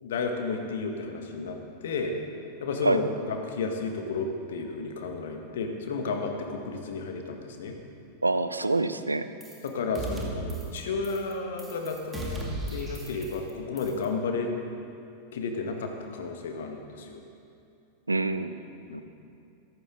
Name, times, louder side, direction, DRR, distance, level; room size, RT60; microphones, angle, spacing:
voice 1, 0.0-2.2 2.6-7.7 9.6-12.4 12.7-14.5 15.3-17.2 18.9-19.0, left 4 dB, 60° left, 4 dB, 1.5 m, -32 dB
voice 2, 8.2-9.3 18.1-18.6 18.9-19.0, right 2 dB, 80° right, 11 dB, 0.6 m, -26 dB
sound 1, 9.4-9.7 9.9-10.8 11.0-11.3 11.6-13.5 13.8-14.0, right 2 dB, 15° right, 2.4 m, -36 dB
14.5 x 14.5 x 3.8 m, 2.6 s
figure-of-eight pair, 90°, 0 cm